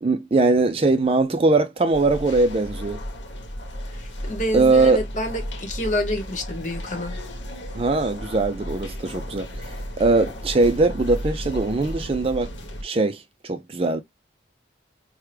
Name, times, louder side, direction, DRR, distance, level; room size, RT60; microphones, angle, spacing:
voice 1, 0.0-3.0 4.5-5.0 7.7-9.5 10.0-12.5 12.8-14.0, right 3 dB, 30° right, 0.4 m, -21 dB
sound 1, 1.9-12.8, equal, 75° left, 0.9 m, -34 dB
voice 2, 3.9-7.2, left 1 dB, 40° left, 1.1 m, -28 dB
4.6 x 2.2 x 3.1 m
head